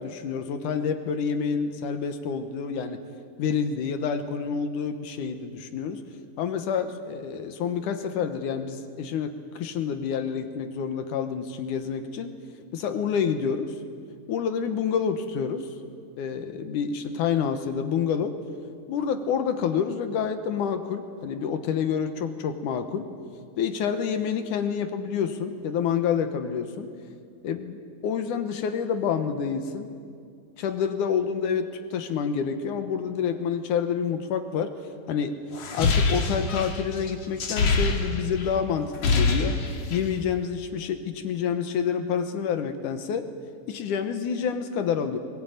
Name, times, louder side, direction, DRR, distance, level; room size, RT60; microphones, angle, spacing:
voice 1, 0.0-3.0 3.4-6.0 6.4-12.3 12.7-13.7 14.3-15.7 16.2-18.4 18.9-23.1 23.6-26.9 27.4-29.9 30.6-34.7 35.1-35.3 35.7-39.6 39.9-43.2 43.7-45.2, left 7 dB, 70° left, 8 dB, 2.5 m, -28 dB
sound 1, 35.5-38.5 38.8-40.1, left 3 dB, 50° left, 2.8 m, -25 dB
21.5 x 21.0 x 9.2 m, 2.2 s
omnidirectional pair, 4.0 m